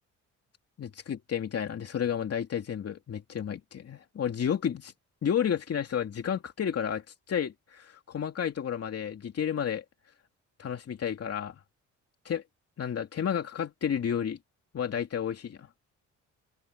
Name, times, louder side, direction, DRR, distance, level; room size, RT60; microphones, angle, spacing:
voice 1, 0.8-4.9 5.2-9.8 10.6-11.6 12.2-12.4 12.8-14.4 14.7-15.7, left 8 dB, 55° left, 2.9 m, -31 dB
cardioid pair, 90°, 30 cm